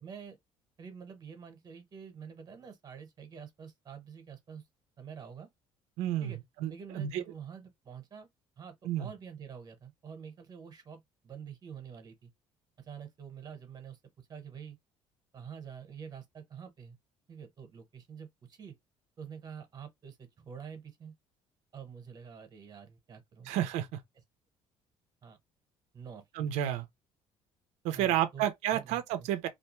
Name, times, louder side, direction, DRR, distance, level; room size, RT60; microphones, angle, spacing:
voice 1, 0.0-0.4 0.8-4.6 5.0-5.5 6.2-6.4 6.7-8.3 8.6-12.3 12.8-14.8 15.3-17.0 17.3-18.7 19.2-21.1 21.7-23.5 25.2-25.4 25.9-26.5 27.9-29.3, right 7 dB, 35° right, 0.9 m, -47 dB
voice 2, 6.0-6.3 6.6-7.2 8.8-9.1 23.5-24.0 26.3-26.9 27.8-29.5, right 11 dB, 90° right, 0.5 m, -31 dB
2.4 x 2.2 x 2.8 m
cardioid pair, 125°, 11 cm